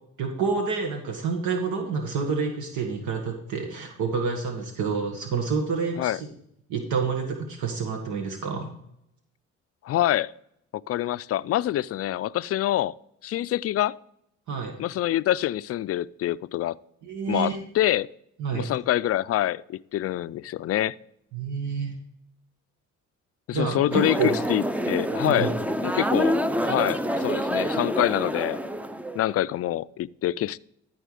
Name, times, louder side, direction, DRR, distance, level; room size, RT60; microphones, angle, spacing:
voice 1, 0.2-6.3 6.7-8.7 14.5-14.8 17.0-17.6 18.4-18.7 21.3-21.9 23.5-24.3 25.2-25.5, right 5 dB, 75° right, 1.6 m, -28 dB
voice 2, 9.8-10.3 10.7-12.9 13.2-14.0 14.8-16.8 17.3-18.1 18.5-20.9 23.5-25.5 25.8-28.6 29.2-30.6, left 13 dB, 50° left, 0.4 m, -26 dB
sound 1, 23.9-29.3, equal, 5° right, 0.5 m, -27 dB
13.5 x 4.6 x 5.0 m
cardioid pair, 90°, 30 cm